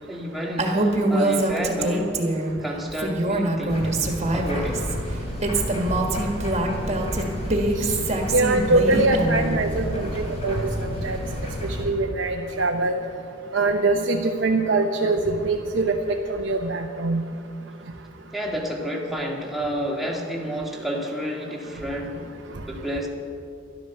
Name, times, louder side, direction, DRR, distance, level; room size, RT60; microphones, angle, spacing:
voice 1, 0.1-2.1 2.6-3.8 4.3-4.8 18.3-22.2 22.7-23.1, equal, ahead, -2 dB, 1.9 m, -30 dB
Female speech woman speaking, 0.6-2.5 2.9-4.9 5.4-9.5, right 2 dB, 35° right, 1.6 m, -24 dB
sound 1, 3.7-11.9, equal, 35° left, 3.0 m, -31 dB
voice 2, 8.3-11.2 11.8-13.0 13.5-17.2, right 2 dB, 80° right, 2 dB, 0.9 m, -23 dB
12.5 x 12.0 x 6.9 m, 2.4 s
head